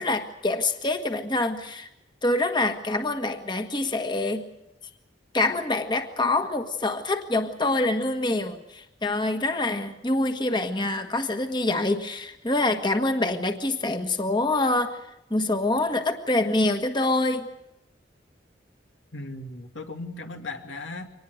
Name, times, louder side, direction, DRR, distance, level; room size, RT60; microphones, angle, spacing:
voice 1, 0.0-1.9 2.2-4.4 5.3-15.0 15.3-17.5, left 2 dB, 25° left, 7 dB, 1.5 m, -25 dB
voice 2, 19.1-21.1, left 2 dB, 90° left, 5 dB, 2.5 m, -37 dB
24.5 x 19.5 x 8.0 m, 0.86 s
head